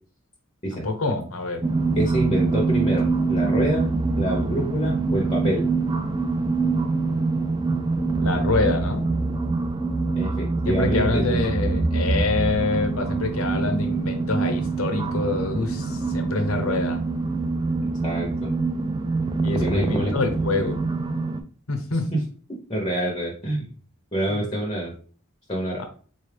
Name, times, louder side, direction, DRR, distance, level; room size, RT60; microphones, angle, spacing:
voice 1, 0.7-1.6 8.2-9.1 10.6-17.0 19.4-20.8 21.7-22.1 24.3-24.5 25.8-25.9, left 3 dB, 85° left, 6 dB, 0.8 m, -26 dB
sound 1, 1.6-21.4, right 3 dB, 20° right, 0.3 m, -25 dB
voice 2, 1.9-3.9 4.2-5.7 10.1-11.4 17.8-18.5 19.6-20.1 22.1-22.2 22.7-23.7 24.1-24.9 25.5-25.8, right 1 dB, 25° left, -1 dB, 0.7 m, -26 dB
4.1 x 2.4 x 3.3 m, 0.42 s
head